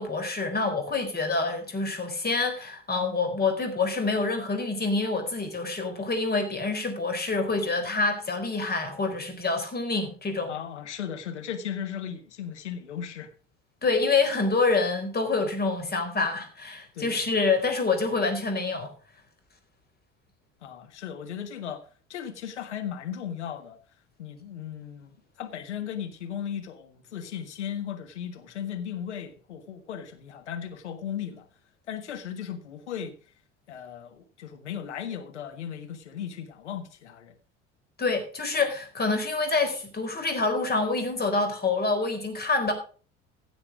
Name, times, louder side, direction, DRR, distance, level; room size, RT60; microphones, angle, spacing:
voice 1, 0.0-10.5 13.8-19.0 38.0-42.7, left 3 dB, 25° left, 4.2 m, -27 dB
voice 2, 10.5-13.3 16.9-17.2 20.6-21.8 22.1-23.8 24.2-31.5 31.9-33.1 33.7-37.3, left 9 dB, 75° left, 1.6 m, -36 dB
16.0 x 7.1 x 5.0 m
figure-of-eight pair, 60°, 35 cm